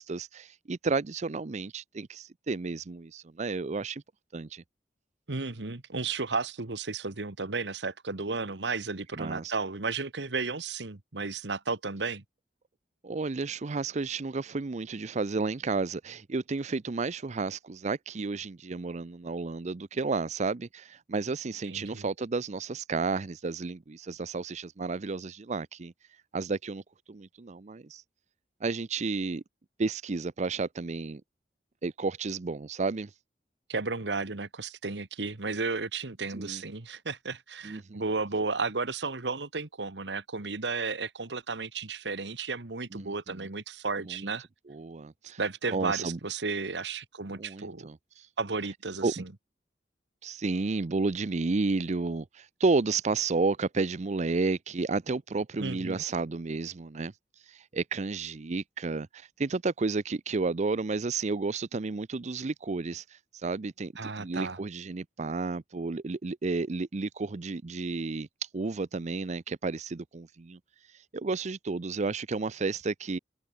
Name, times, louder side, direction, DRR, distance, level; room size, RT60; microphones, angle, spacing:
voice 1, 0.0-4.0 4.3-4.6 9.2-9.5 13.0-25.9 26.3-26.8 27.1-28.0 28.6-29.4 29.8-31.2 31.8-33.1 36.3-36.6 37.6-38.0 42.9-43.5 44.0-44.3 44.7-45.4 45.7-46.2 47.4-48.3 49.0-49.2 50.2-73.2, right 3 dB, 40° right, 0.5 m, -32 dB
voice 2, 5.3-12.2 21.7-22.1 33.7-44.5 45.4-47.9 48.4-49.3 55.6-56.0 64.0-64.6, right 4 dB, 80° right, 1.5 m, -33 dB
open air
head